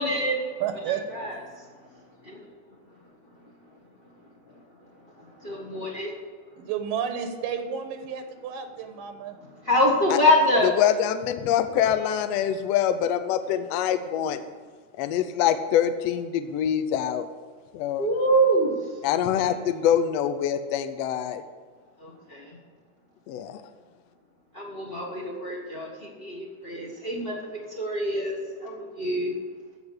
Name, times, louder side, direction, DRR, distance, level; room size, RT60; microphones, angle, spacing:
voice 1, 0.0-0.4 1.1-1.3 2.2-2.4 5.4-6.1 9.6-10.8 18.0-18.7 19.4-19.6 22.0-22.6 24.5-29.3, equal, 60° left, -2 dB, 0.5 m, -25 dB
voice 2, 0.6-1.0 6.6-9.4, right 8 dB, 90° right, 6 dB, 2.8 m, -31 dB
voice 3, 10.6-14.4 15.0-17.3 17.7-18.1 19.0-21.4 23.3-23.6, left 10 dB, 85° left, 9 dB, 1.4 m, -25 dB
14.5 x 5.1 x 8.6 m, 1.5 s
omnidirectional pair, 3.8 m